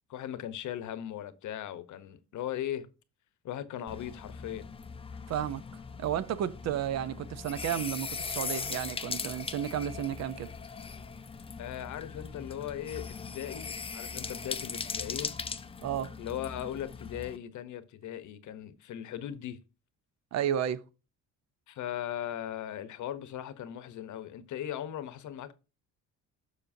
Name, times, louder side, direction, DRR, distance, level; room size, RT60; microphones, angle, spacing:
voice 1, 0.1-2.9 3.4-4.7 11.6-15.3 16.2-19.6 21.7-25.5, left 11 dB, 65° left, 0.9 m, -38 dB
sound 1, 3.9-17.4, left 5 dB, 20° left, 0.5 m, -40 dB
voice 2, 5.3-5.6 6.0-10.5 15.8-16.1 20.3-20.8, right 10 dB, 55° right, 0.6 m, -32 dB
7.2 x 6.5 x 2.6 m
cardioid pair, 120°, 32 cm